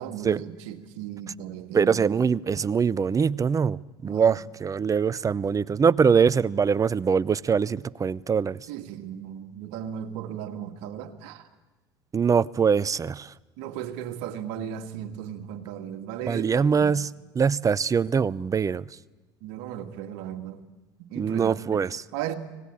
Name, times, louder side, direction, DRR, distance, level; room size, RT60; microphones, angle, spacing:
voice 1, 0.0-2.2 4.0-4.4 8.7-11.5 13.6-17.0 19.4-20.6 21.1-22.4, right 10 dB, 70° right, 2.0 m, -36 dB
voice 2, 1.7-8.6 12.1-13.3 16.3-17.1 17.4-18.8 21.2-21.9, right 6 dB, 25° right, 0.7 m, -23 dB
25.0 x 18.5 x 8.7 m
hypercardioid pair, 70°, 13 cm